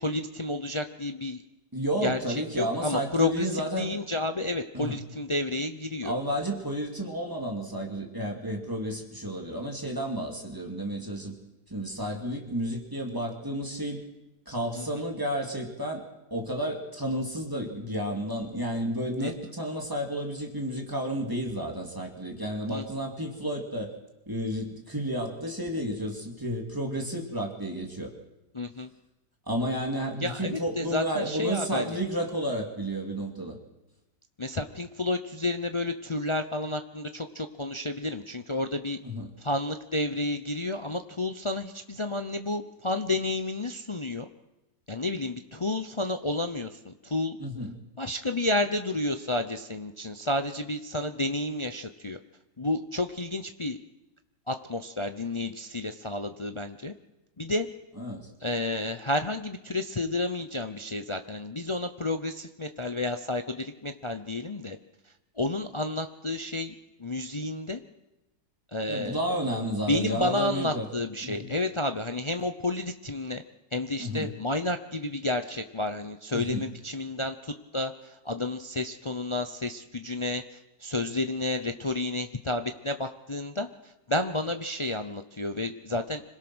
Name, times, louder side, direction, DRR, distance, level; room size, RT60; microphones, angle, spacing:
voice 1, 0.0-1.4 2.0-6.1 14.7-15.0 19.2-19.3 22.7-22.8 28.5-28.9 30.2-32.0 34.4-39.0 39.4-44.3 44.9-47.4 48.0-52.2 52.6-53.8 54.5-56.9 57.4-57.7 58.4-64.8 65.4-66.7 67.0-67.8 68.7-69.3 69.9-73.4 73.7-86.2, left 2 dB, 55° left, 8 dB, 0.3 m, -31 dB
voice 2, 1.7-3.9 4.7-5.0 6.0-11.3 11.7-14.0 14.5-16.0 16.3-23.9 24.3-28.1 29.5-33.6 39.0-39.3 47.4-47.7 58.0-58.3 68.9-70.9 71.2-71.5 74.0-74.3 76.3-76.6, equal, 10° right, 1 dB, 2.8 m, -31 dB
26.0 x 17.5 x 6.2 m, 0.98 s
omnidirectional pair, 1.8 m